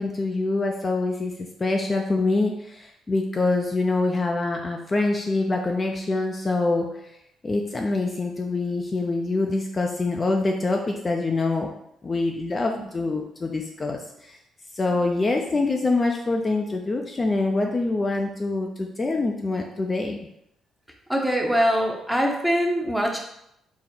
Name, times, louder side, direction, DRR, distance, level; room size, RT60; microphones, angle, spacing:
voice 1, 0.0-6.9 7.4-11.7 12.0-14.4 14.7-20.2, left 3 dB, 30° left, 2 dB, 0.4 m, -25 dB
voice 2, 21.1-23.2, equal, 5° right, 1 dB, 0.7 m, -23 dB
3.9 x 2.0 x 4.3 m, 0.78 s
cardioid pair, 90°, 0 cm